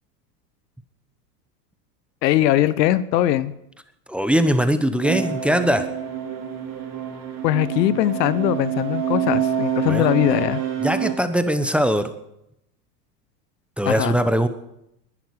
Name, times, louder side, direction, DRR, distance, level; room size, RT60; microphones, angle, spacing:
voice 1, 2.2-3.5 7.4-10.6 13.9-14.1, left 13 dB, 75° left, 17 dB, 0.9 m, -20 dB
voice 2, 4.1-5.9 9.8-10.1 10.8-12.1 13.8-14.5, equal, ahead, 10 dB, 1.0 m, -21 dB
sound 1, 5.0-11.1, right 9 dB, 40° right, 4.3 m, -27 dB
20.5 x 11.5 x 4.8 m, 0.79 s
hypercardioid pair, 100°, 50 cm